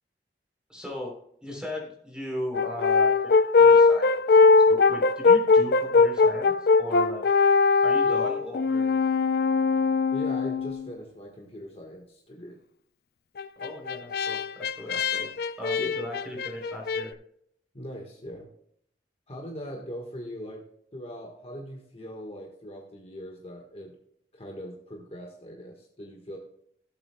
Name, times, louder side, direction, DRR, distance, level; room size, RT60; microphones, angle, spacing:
voice 1, 0.7-1.1 1.4-7.3 7.8-8.9 13.6-15.3 15.6-17.1, left 1 dB, 5° right, -1 dB, 3.5 m, -37 dB
Brass instrument, 2.5-10.9 13.4-17.0, left 4 dB, 60° left, 0.4 m, -21 dB
voice 2, 10.1-12.6 15.8-15.9 17.7-18.5 19.3-20.6 20.9-23.9 24.3-26.4, equal, 35° left, 0 dB, 1.4 m, -40 dB
16.5 x 7.8 x 2.2 m, 0.71 s
head